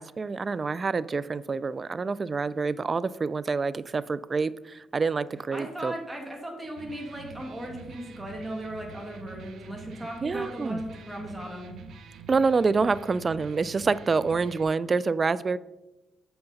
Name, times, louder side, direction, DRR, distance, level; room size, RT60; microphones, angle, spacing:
voice 1, 0.0-5.9 10.2-10.8 12.3-15.6, right 4 dB, 35° right, 18 dB, 0.3 m, -27 dB
voice 2, 5.5-11.8, right 1 dB, 10° right, -1 dB, 2.1 m, -37 dB
Electric guitar, 6.6-14.6, right 4 dB, 70° right, 1.0 m, -46 dB
7.9 x 7.7 x 4.0 m, 0.98 s
cardioid pair, 90°, 0 cm